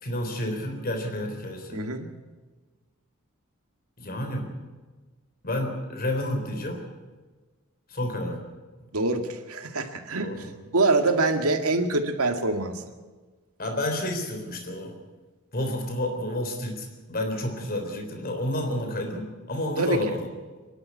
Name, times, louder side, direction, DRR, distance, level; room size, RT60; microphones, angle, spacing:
voice 1, 0.0-1.8 4.0-4.5 5.4-6.8 7.9-8.4 10.2-10.5 13.6-14.9 15.5-20.3, left 1 dB, 45° left, 4 dB, 3.7 m, -30 dB
voice 2, 1.7-2.1 8.9-12.8 19.8-20.1, right 2 dB, 80° right, 5 dB, 2.0 m, -25 dB
24.0 x 11.5 x 9.6 m, 1.3 s
head